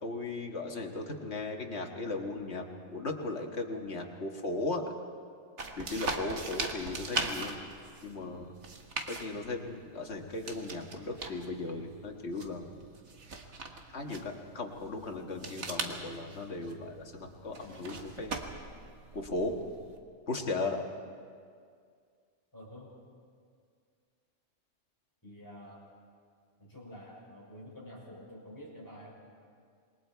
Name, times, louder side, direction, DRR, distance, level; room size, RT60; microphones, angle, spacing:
voice 1, 0.0-4.8 5.8-7.6 8.0-8.5 9.1-12.6 13.9-18.3 19.1-19.5 20.3-20.8, left 3 dB, 60° left, 2 dB, 1.9 m, -37 dB
sound 1, 5.6-20.0, right 3 dB, 60° right, 1.7 m, -41 dB
voice 2, 22.5-22.9 25.2-25.8 26.6-29.2, equal, 15° left, -5 dB, 5.9 m, -48 dB
27.0 x 21.0 x 4.6 m, 2.2 s
omnidirectional pair, 1.3 m